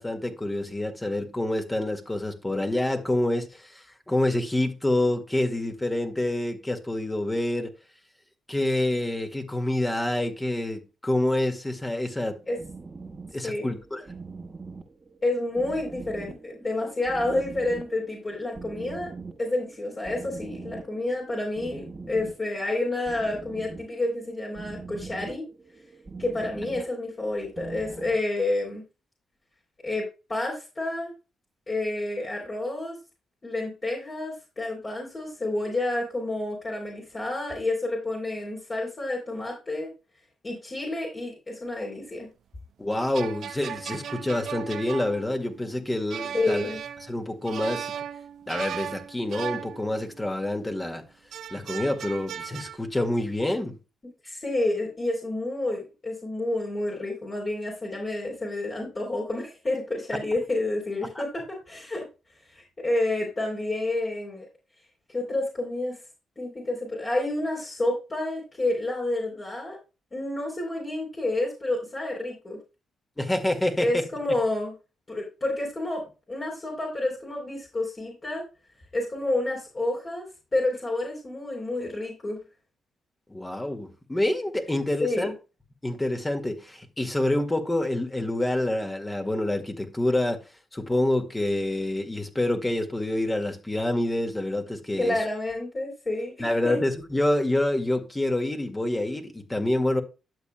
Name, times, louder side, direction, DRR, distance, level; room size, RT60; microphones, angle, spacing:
voice 1, 0.0-7.7 8.5-12.4 13.3-14.1 42.8-46.7 47.1-47.9 48.5-51.1 51.5-53.8 73.2-73.9 83.3-85.3 85.8-90.4 90.7-95.2 96.4-100.0, left 1 dB, 15° left, 1.9 m, -27 dB
sound 1, 12.6-28.2, right 4 dB, 35° right, 1.4 m, -43 dB
voice 2, 13.4-13.7 15.2-19.1 19.4-25.5 26.2-28.8 29.8-31.1 31.7-33.0 33.4-39.9 40.4-42.3 46.3-46.8 54.2-62.1 62.5-64.5 65.1-66.0 66.4-69.8 70.1-72.6 73.8-74.7 75.1-78.4 78.9-80.3 80.5-82.4 85.0-85.3 95.0-96.8, left 2 dB, 35° left, 3.6 m, -29 dB
sound 2, 42.9-50.4 51.3-52.8, right 9 dB, 65° right, 0.5 m, -37 dB
12.0 x 7.0 x 2.2 m
hypercardioid pair, 45°, 0 cm